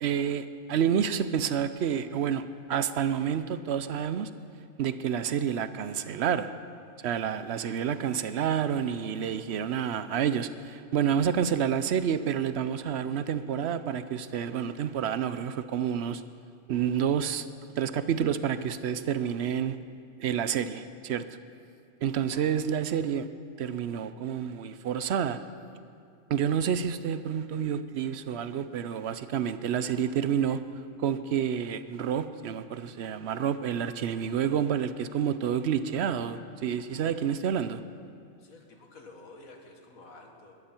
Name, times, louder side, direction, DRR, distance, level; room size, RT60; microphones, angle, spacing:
voice 1, 0.0-4.3 4.8-6.5 7.0-16.2 16.7-17.5 17.8-19.8 20.2-21.2 22.0-23.3 23.6-25.4 26.3-30.6 31.0-37.8, right 8 dB, 60° right, 12 dB, 0.8 m, -29 dB
voice 2, 38.4-40.5, left 2 dB, 75° left, 2 dB, 2.1 m, -50 dB
21.0 x 13.0 x 4.4 m, 2.4 s
omnidirectional pair, 1.5 m